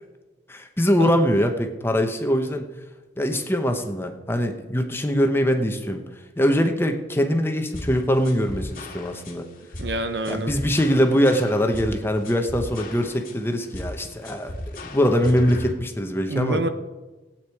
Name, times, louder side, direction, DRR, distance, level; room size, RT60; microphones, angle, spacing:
voice 1, 0.5-2.7 3.2-6.0 6.4-9.5 10.3-14.5 14.8-16.6, equal, 15° left, 5 dB, 0.9 m, -22 dB
sound 1, 7.7-15.7, left 1 dB, 50° left, 1.6 m, -36 dB
voice 2, 9.8-10.6 16.3-16.7, right 2 dB, 65° right, 9 dB, 0.8 m, -26 dB
16.0 x 8.8 x 4.7 m, 1.2 s
head